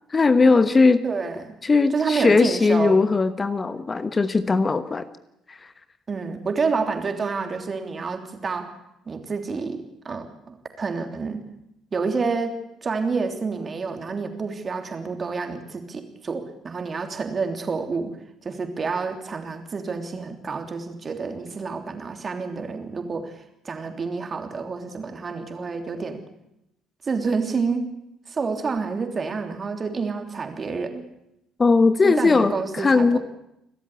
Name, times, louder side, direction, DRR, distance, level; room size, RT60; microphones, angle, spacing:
voice 1, 0.1-1.0 1.6-5.1 5.5-5.7 31.6-33.2, left 4 dB, 30° left, 12 dB, 1.1 m, -19 dB
voice 2, 1.0-1.6 1.9-3.1 6.1-8.7 9.1-11.4 11.9-12.5 12.8-18.1 18.4-26.2 27.0-27.9 28.3-31.1 32.0-33.2, right 4 dB, 35° right, 5 dB, 3.2 m, -28 dB
29.0 x 13.0 x 8.3 m, 0.83 s
figure-of-eight pair, 50°, 0 cm